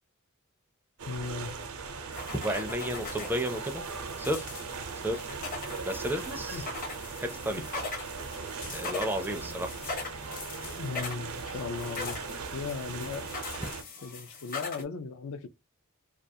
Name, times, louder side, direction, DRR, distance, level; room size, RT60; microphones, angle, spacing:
sound 1, 1.0-13.8, right 5 dB, 85° right, 0.7 m, -39 dB
voice 1, 1.1-1.6 6.5-6.6 10.8-12.2 12.5-13.3 14.0-15.5, left 5 dB, 65° left, 0.4 m, -37 dB
sound 2, 2.1-14.8, left 3 dB, 40° left, 0.7 m, -41 dB
voice 2, 2.4-3.8 4.2-4.5 5.0-5.3 5.9-6.7 7.2-7.6 8.7-9.8, equal, 10° right, 0.4 m, -32 dB
2.3 x 2.3 x 2.7 m
head